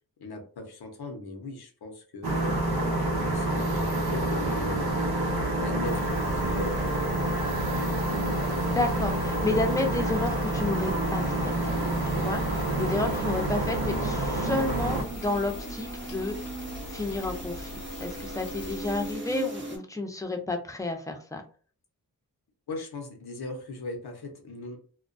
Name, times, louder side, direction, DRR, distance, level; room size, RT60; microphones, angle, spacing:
voice 1, 0.2-2.6 3.1-4.9 5.6-8.0 22.7-24.8, left 2 dB, 85° left, 4 dB, 0.7 m, -39 dB
sound 1, 2.2-15.0, right 1 dB, 80° right, 0.6 m, -28 dB
sound 2, 2.6-19.8, right 2 dB, 30° right, 0.7 m, -43 dB
sound 3, 5.8-19.1, left 1 dB, 60° left, 0.4 m, -43 dB
voice 2, 8.7-11.5 12.0-16.4 16.9-17.7 18.0-21.4, left 2 dB, 10° left, 3 dB, 0.5 m, -31 dB
2.2 x 2.2 x 2.5 m, 0.40 s
cardioid pair, 55°, 37 cm